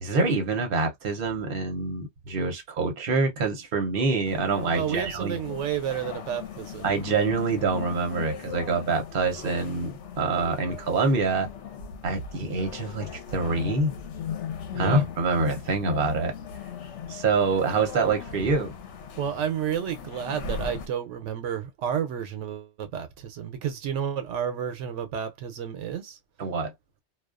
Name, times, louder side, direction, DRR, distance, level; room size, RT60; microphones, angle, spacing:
voice 1, 0.0-5.4 6.8-11.5 12.0-13.9 14.8-16.3 17.1-18.7 26.4-26.7, right 4 dB, 55° right, 0.9 m, -26 dB
sound 1, 4.2-20.9, left 7 dB, 80° left, 1.0 m, -38 dB
voice 2, 4.7-6.9 14.7-15.0 19.2-26.2, right 8 dB, 85° right, 0.9 m, -31 dB
2.3 x 2.3 x 2.3 m
omnidirectional pair, 1.2 m